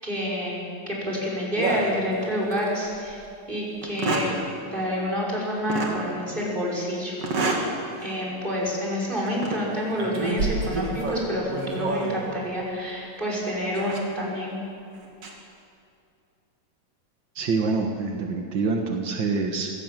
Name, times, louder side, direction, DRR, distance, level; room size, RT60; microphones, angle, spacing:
voice 1, 0.0-3.2 3.5-4.4 4.7-7.7 8.0-14.6, equal, 15° right, -4 dB, 6.0 m, -28 dB
sound 1, 1.6-2.6 3.1-3.2 3.8-4.4 5.7-6.0 7.2-7.7 8.2-8.4 9.3-9.6 10.0-12.3 13.7-14.0 15.0-15.3, right 2 dB, 45° right, 3.3 m, -28 dB
voice 2, 17.3-19.7, right 4 dB, 60° right, 2 dB, 1.1 m, -26 dB
26.5 x 17.0 x 7.5 m, 2.5 s
omnidirectional pair, 4.2 m